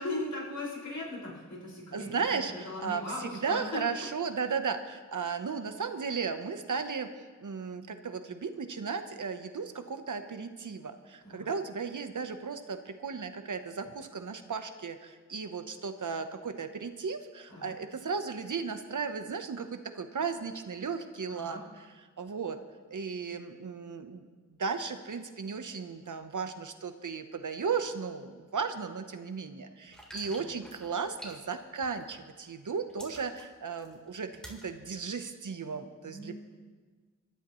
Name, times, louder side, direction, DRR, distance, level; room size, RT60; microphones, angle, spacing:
voice 1, 0.0-3.8 11.2-11.5 17.5-17.7 21.3-21.6 30.2-30.4 36.0-36.4, left 2 dB, 80° left, -5 dB, 5.6 m, -39 dB
voice 2, 1.9-7.1 7.4-22.6 22.9-36.3, right 5 dB, 85° right, 8 dB, 1.0 m, -35 dB
sound 1, 29.9-32.3 32.6-34.7 35.2-35.3, equal, ahead, 3.7 m, -49 dB
26.0 x 13.0 x 3.2 m, 1.5 s
wide cardioid pair, 70°, 30 cm